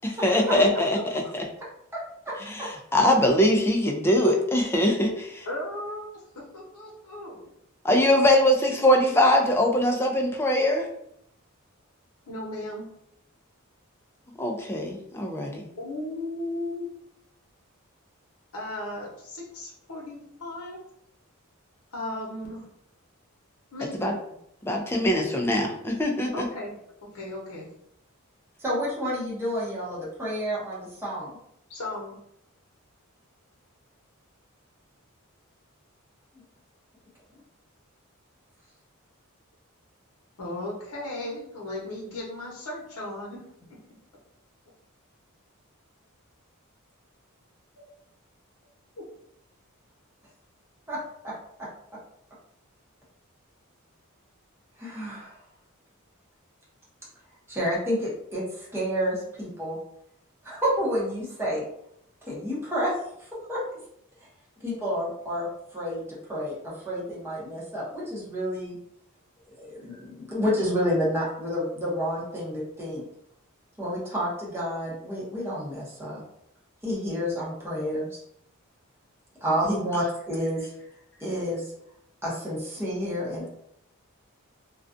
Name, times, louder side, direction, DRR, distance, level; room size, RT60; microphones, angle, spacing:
voice 1, 0.0-1.4 2.5-5.5 7.8-10.9 14.4-15.7 24.0-24.1 24.6-26.5, left 1 dB, 10° left, 1 dB, 0.3 m, -22 dB
voice 2, 5.5-7.5 12.3-12.8 15.8-16.8 18.5-20.8 21.9-22.7 23.7-24.1 26.3-26.8 27.0-27.7 31.7-32.2 40.4-43.4 47.8-47.9, left 1 dB, 85° left, -2 dB, 0.8 m, -36 dB
voice 3, 28.6-31.3 50.9-51.0 54.8-55.4 57.5-59.8 60.4-61.6 62.3-62.9 63.5-63.6 64.6-68.8 69.5-73.0 73.8-76.2 76.8-78.2 79.4-80.7 81.2-81.7 82.2-83.5, equal, 10° right, -7 dB, 0.7 m, -29 dB
2.4 x 2.2 x 2.5 m, 0.73 s
head